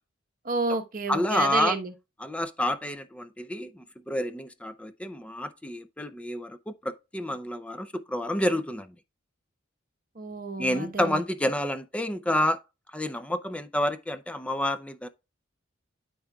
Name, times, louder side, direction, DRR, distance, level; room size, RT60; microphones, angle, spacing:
voice 1, 0.4-1.9 10.2-11.2, right 4 dB, 40° right, 1.0 m, -30 dB
voice 2, 1.1-1.8 2.2-8.9 10.6-12.6 12.9-15.1, left 1 dB, 5° left, 0.4 m, -29 dB
12.5 x 4.7 x 2.3 m
head